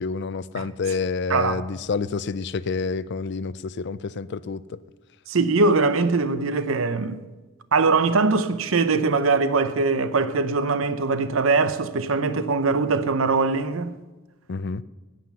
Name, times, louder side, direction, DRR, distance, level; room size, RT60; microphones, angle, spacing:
voice 1, 0.0-4.8 14.5-14.8, left 4 dB, 60° left, 0.5 m, -28 dB
voice 2, 1.3-1.6 5.3-7.2 7.7-14.0, right 4 dB, 90° right, 0.7 m, -22 dB
11.5 x 9.3 x 7.0 m
head